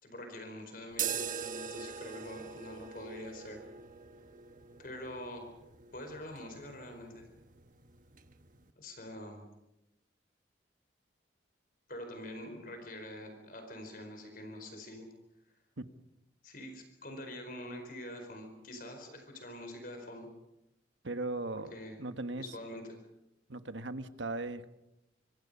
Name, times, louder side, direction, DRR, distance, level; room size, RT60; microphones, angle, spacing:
voice 1, 0.0-3.6 4.8-5.4 5.9-7.3 8.8-9.4 11.9-15.1 16.4-20.3 21.5-22.0 22.4-22.8, left 1 dB, 50° left, 5 dB, 4.5 m, -45 dB
sound 1, 0.9-8.7, right 7 dB, 45° right, 1.3 m, -43 dB
voice 2, 21.0-22.4 23.5-24.7, right 2 dB, 80° right, 10 dB, 1.3 m, -38 dB
26.5 x 25.0 x 5.5 m, 0.91 s
head